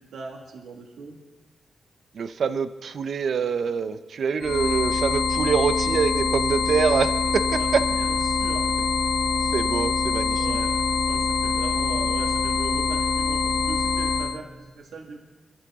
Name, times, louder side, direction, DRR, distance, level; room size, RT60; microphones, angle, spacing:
voice 1, 0.1-1.2 7.6-8.6 9.0-9.1 9.5-9.6 10.4-10.7 11.1-15.2, right 4 dB, 85° right, 0 dB, 1.8 m, -39 dB
voice 2, 2.1-7.8 9.5-10.6, right 6 dB, 65° right, 11 dB, 0.7 m, -25 dB
sound 1, 4.4-14.4, left 5 dB, 75° left, 0.8 m, -24 dB
25.0 x 11.5 x 3.7 m, 1.2 s
cardioid pair, 100°, 0 cm